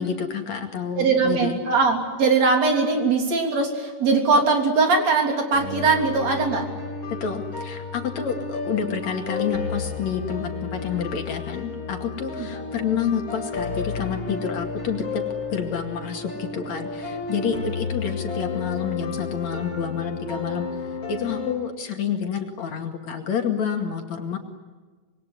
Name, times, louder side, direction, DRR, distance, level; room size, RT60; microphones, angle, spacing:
voice 1, 0.0-1.6 7.2-15.2 15.5-20.7 21.1-24.4, left 7 dB, 60° left, 4 dB, 3.5 m, -28 dB
voice 2, 1.0-6.6, right 4 dB, 55° right, 3 dB, 4.4 m, -21 dB
sound 1, 5.5-21.5, left 4 dB, 35° left, 7.1 m, -32 dB
26.5 x 22.5 x 9.7 m, 1.4 s
omnidirectional pair, 3.7 m